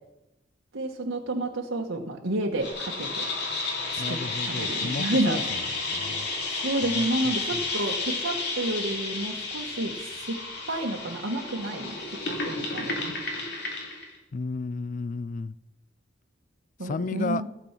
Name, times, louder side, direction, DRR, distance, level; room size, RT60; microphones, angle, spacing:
voice 1, 0.7-3.3 3.9-5.4 6.5-10.4 10.7-12.2 12.5-13.1 16.8-17.5, right 1 dB, 90° right, 1 dB, 1.3 m, -30 dB
sound 1, 2.6-14.1, left 3 dB, 55° left, 2.6 m, -32 dB
voice 2, 4.0-5.6 5.9-6.3 6.9-7.6 14.3-15.5 16.8-17.4, left 4 dB, 40° left, 18 dB, 0.3 m, -33 dB
15.5 x 6.9 x 5.9 m, 0.98 s
head